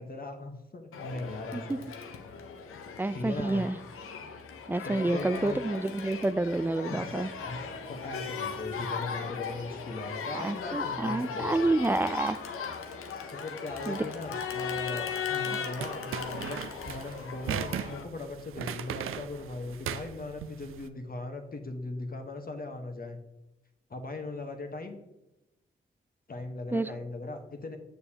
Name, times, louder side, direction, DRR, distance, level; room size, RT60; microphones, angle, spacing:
voice 1, 0.0-1.8 3.1-3.7 4.8-5.6 6.9-11.5 13.3-23.2 23.9-25.0 26.3-27.8, left 2 dB, 45° left, 5 dB, 1.2 m, -39 dB
Crowd, 0.9-18.0, left 6 dB, 90° left, 0.7 m, -37 dB
voice 2, 3.0-3.8 4.7-7.3 10.3-12.5 13.9-14.1 26.7-26.9, right 2 dB, 10° right, 16 dB, 0.3 m, -29 dB
sound 1, 15.8-20.8, right 9 dB, 80° right, 0.4 m, -37 dB
6.8 x 6.7 x 2.9 m, 0.97 s
supercardioid pair, 40°, 21 cm